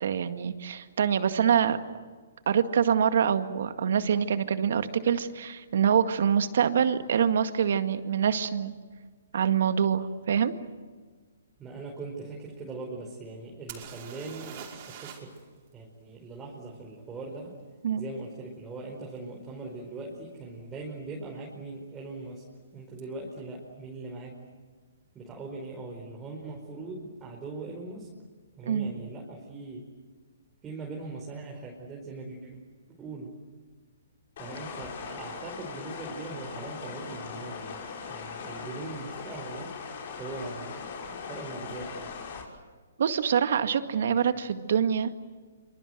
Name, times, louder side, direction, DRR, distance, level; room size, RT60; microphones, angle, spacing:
voice 1, 0.0-1.8 2.5-8.7 9.3-10.5 17.8-18.0 28.7-28.9 43.0-45.1, right 8 dB, 65° right, 9 dB, 1.9 m, -25 dB
voice 2, 11.6-15.4 15.7-17.6 18.0-22.5 22.7-24.4 25.1-28.1 28.6-29.9 30.6-32.6 33.0-33.4 34.4-39.7 40.2-40.9 41.2-42.1, right 3 dB, 15° right, -1 dB, 4.9 m, -40 dB
sound 1, 13.7-15.4 15.7-15.8 19.2-19.3 19.9-20.1 20.3-20.9 23.0-23.1 23.3-23.4, right 8 dB, 40° right, 5.7 m, -44 dB
sound 2, 34.4-42.4, left 5 dB, 55° left, 6.3 m, -40 dB
27.0 x 25.5 x 8.0 m, 1.5 s
hypercardioid pair, 140°, 0 cm